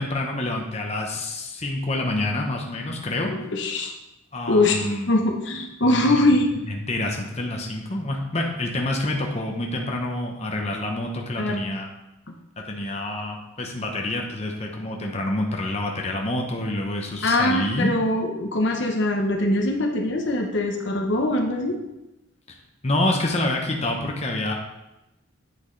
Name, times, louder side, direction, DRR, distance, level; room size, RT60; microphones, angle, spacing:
voice 1, 0.0-3.3 4.3-5.1 5.8-6.2 6.7-11.9 12.7-17.9 22.8-24.5, left 1 dB, 30° left, 1 dB, 0.9 m, -27 dB
voice 2, 3.2-3.9 4.5-6.5 11.4-11.8 12.3-12.4 17.2-21.8, left 1 dB, 60° left, 2 dB, 0.9 m, -22 dB
8.7 x 6.0 x 3.2 m, 0.95 s
head